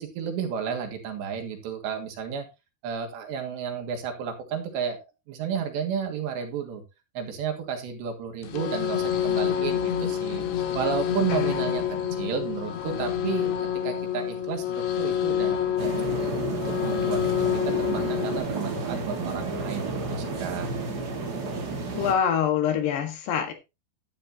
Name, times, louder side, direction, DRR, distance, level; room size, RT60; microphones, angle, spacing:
voice 1, 0.0-2.5 2.8-6.8 7.2-10.5 10.8-11.8 12.2-13.5 13.8-17.3 17.6-20.7, right 7 dB, 75° right, 3 dB, 3.8 m, -32 dB
sound 1, 8.4-18.4, left 9 dB, 85° left, 3.9 m, -27 dB
sound 2, 15.8-22.1, right 3 dB, 55° right, 1.1 m, -31 dB
voice 2, 21.9-23.5, left 8 dB, 70° left, 5 dB, 3.5 m, -25 dB
12.0 x 9.9 x 2.8 m, 0.25 s
omnidirectional pair, 5.2 m